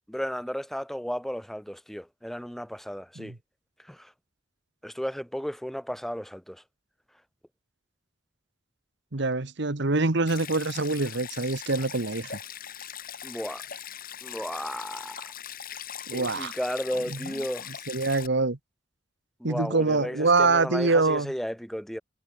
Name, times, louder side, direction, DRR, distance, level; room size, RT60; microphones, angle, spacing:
voice 1, 0.1-3.3 3.9-4.1 4.8-6.6 13.2-13.6 14.2-15.2 16.1-17.7 19.4-22.0, equal, ahead, 0.8 m, -34 dB
voice 2, 9.1-12.4 16.1-16.5 17.1-17.2 17.9-18.6 19.4-21.3, right 3 dB, 65° right, 1.4 m, -25 dB
Stream, 10.3-18.3, left 9 dB, 50° left, 2.5 m, -40 dB
head